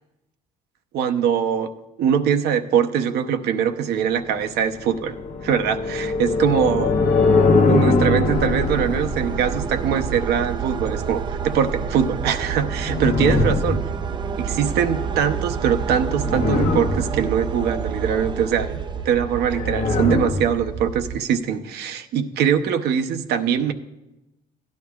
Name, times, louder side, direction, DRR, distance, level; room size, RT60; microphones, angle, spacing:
voice 1, 0.9-5.2 5.4-7.0 7.7-13.8 14.4-23.7, right 8 dB, 75° right, 6 dB, 0.7 m, -22 dB
sound 1, 4.7-10.4 12.4-14.3 15.8-17.4 19.2-20.5, left 3 dB, 50° left, 1.0 m, -22 dB
sound 2, 8.3-21.2, right 7 dB, 30° right, 0.4 m, -28 dB
16.5 x 10.5 x 2.3 m, 1.0 s
cardioid pair, 110°, 17 cm